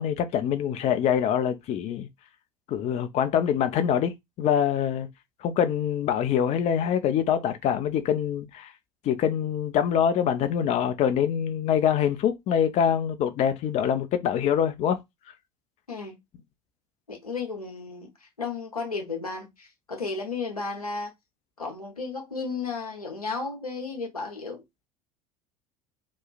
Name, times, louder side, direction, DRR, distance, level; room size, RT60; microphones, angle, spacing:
voice 1, 0.0-2.1 2.7-5.1 5.4-8.7 9.0-15.0, left 9 dB, 35° left, 0.5 m, -24 dB
voice 2, 15.9-16.2 17.1-18.1 18.4-21.1 21.6-24.6, left 4 dB, 85° left, 0.8 m, -33 dB
2.9 x 2.3 x 2.3 m
figure-of-eight pair, 65°, 19 cm